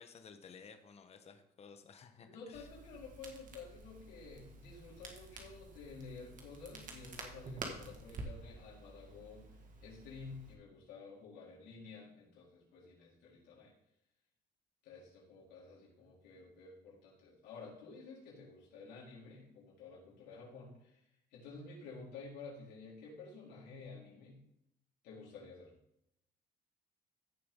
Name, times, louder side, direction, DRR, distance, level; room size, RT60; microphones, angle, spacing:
voice 1, 0.0-2.7, left 6 dB, 40° left, 7 dB, 1.1 m, -55 dB
voice 2, 2.2-9.5 9.8-13.7 14.8-21.0 21.3-24.4 25.0-25.7, left 4 dB, 85° left, -5 dB, 4.3 m, -51 dB
Crackle, 2.5-10.5, right 3 dB, 50° right, 2.0 m, -50 dB
15.0 x 6.8 x 3.8 m, 0.80 s
cardioid pair, 110°, 17 cm